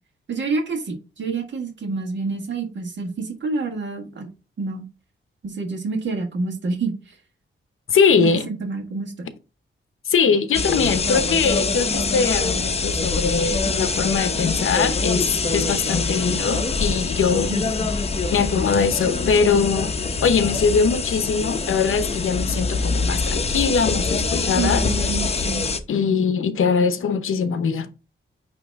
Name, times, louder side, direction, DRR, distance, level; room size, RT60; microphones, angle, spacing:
voice 1, 0.3-4.3 4.6-4.8 5.4-6.9 8.2-9.3 17.5-17.9 24.6-25.6, right 4 dB, 60° right, 1.8 m, -28 dB
voice 2, 7.9-8.5 10.1-17.5 18.3-19.9 20.2-25.1 25.9-27.9, left 5 dB, 85° left, 0.9 m, -21 dB
sound 1, 10.5-25.8, left 4 dB, 30° left, 0.7 m, -24 dB
8.9 x 3.0 x 3.5 m
wide cardioid pair, 165°, 21 cm